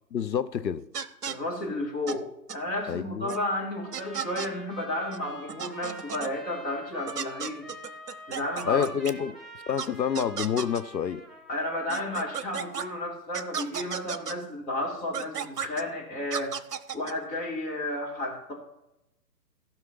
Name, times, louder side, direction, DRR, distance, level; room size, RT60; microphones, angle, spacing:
voice 1, 0.1-0.8 2.9-3.3 8.7-9.4 9.7-11.2, left 8 dB, 90° left, 0.7 m, -28 dB
sound 1, 0.9-1.4 2.1-2.2 2.5-2.6 3.3-3.4 3.9-4.5 5.1-5.2 5.5-6.3 7.1-9.1 9.8-9.9 10.1-10.8 11.9-12.9 13.3-14.3 15.1-15.8 16.3-17.1, right 7 dB, 65° right, 1.0 m, -34 dB
voice 2, 1.2-2.3 2.5-7.7 8.3-8.9 11.5-16.6 16.9-18.5, left 1 dB, 15° left, 2.4 m, -32 dB
Trumpet, 3.7-12.9, equal, ahead, 0.3 m, -47 dB
14.5 x 5.8 x 5.4 m
figure-of-eight pair, 140°, 50 cm